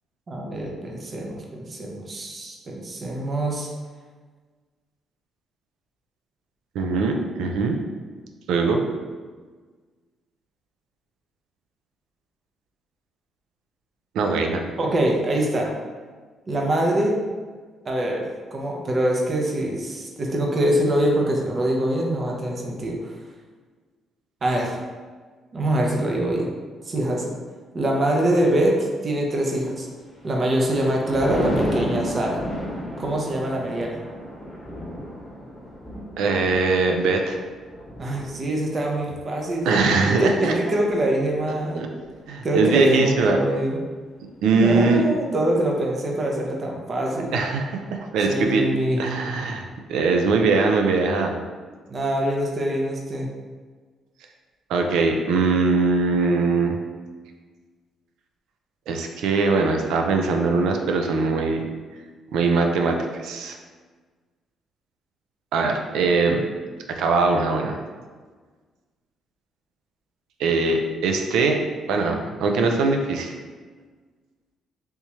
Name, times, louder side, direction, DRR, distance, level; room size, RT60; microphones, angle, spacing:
voice 1, 0.3-3.7 14.8-15.7 16.5-17.2 17.8-23.1 24.4-24.8 25.5-26.5 26.8-27.4 27.7-29.9 30.2-32.4 33.0-34.0 38.0-39.7 40.2-42.0 42.4-43.8 44.5-47.3 48.3-49.0 50.3-50.5 51.9-53.3, right 1 dB, 40° right, -1 dB, 0.6 m, -24 dB
voice 2, 6.7-7.8 8.5-8.8 14.1-14.7 36.2-37.4 39.6-40.6 41.7-41.9 42.3-43.4 44.4-45.0 47.3-48.6 49.0-51.4 54.7-56.8 58.9-61.7 62.3-63.6 65.5-66.4 66.9-67.8 70.4-71.6 71.9-73.3, right 4 dB, 85° right, 3 dB, 0.4 m, -21 dB
Thunder, 30.0-41.5 42.0-42.3, equal, 20° left, 1.1 m, -33 dB
3.5 x 2.8 x 3.0 m, 1.5 s
cardioid pair, 90°, 0 cm